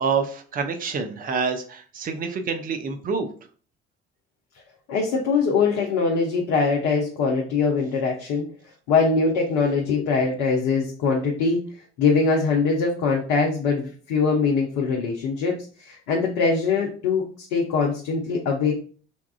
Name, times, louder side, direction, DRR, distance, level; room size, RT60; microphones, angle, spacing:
voice 1, 0.0-3.3, right 5 dB, 25° right, 7 dB, 0.5 m, -27 dB
voice 2, 4.9-8.4 8.9-11.6 12.0-15.5 15.8-17.2 17.5-18.7, left 4 dB, 65° left, -1 dB, 0.7 m, -22 dB
4.2 x 2.3 x 2.3 m, 0.41 s
figure-of-eight pair, 55°, 34 cm